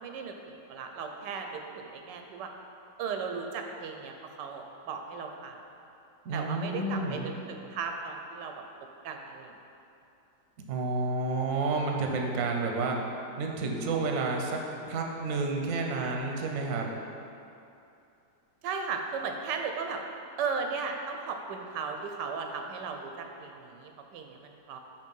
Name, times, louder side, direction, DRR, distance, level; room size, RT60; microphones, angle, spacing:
voice 1, 0.0-2.5 3.0-5.6 6.3-8.5 9.0-9.5 18.6-20.0 20.4-24.8, right 5 dB, 85° right, 4 dB, 1.3 m, -36 dB
voice 2, 6.2-7.3 10.7-13.0 13.4-14.6 14.9-16.9, right 3 dB, 60° right, 1 dB, 1.0 m, -30 dB
5.5 x 5.0 x 5.4 m, 2.7 s
omnidirectional pair, 1.8 m